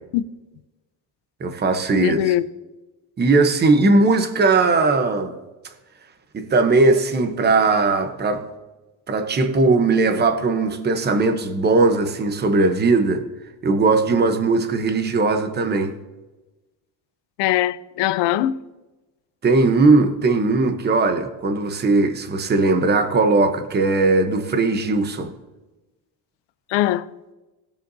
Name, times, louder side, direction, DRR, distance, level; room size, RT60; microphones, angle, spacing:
voice 1, 1.4-2.3 3.2-5.4 6.3-8.4 9.1-13.2 13.6-15.9 19.4-25.3, right 3 dB, 25° right, 0.9 m, -19 dB
voice 2, 2.0-2.4 17.4-18.6 26.7-27.1, left 13 dB, 75° left, 0.6 m, -21 dB
19.0 x 6.8 x 2.7 m
cardioid pair, 150°, 43 cm